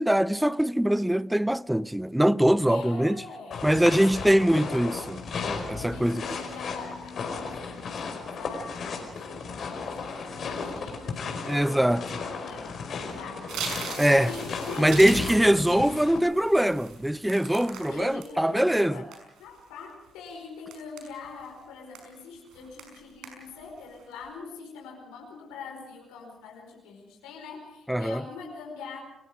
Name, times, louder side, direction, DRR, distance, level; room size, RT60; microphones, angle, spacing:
voice 1, 0.0-3.2 3.6-6.2 11.5-12.0 14.0-14.3 14.8-19.0 27.9-28.2, right 1 dB, 5° right, 0.7 m, -23 dB
voice 2, 2.7-4.1 5.4-15.3 17.8-19.1 19.4-29.0, left 5 dB, 80° left, 4.9 m, -43 dB
sound 1, 3.5-16.2, left 5 dB, 55° left, 4.9 m, -35 dB
sound 2, 13.5-18.3 18.7-19.6 20.1-20.3 20.7-21.5 21.9-22.2 22.5-23.0 23.2-23.6 24.0-24.2, right 6 dB, 70° right, 5.6 m, -39 dB
29.0 x 20.0 x 5.0 m
hypercardioid pair, 45°, 0 cm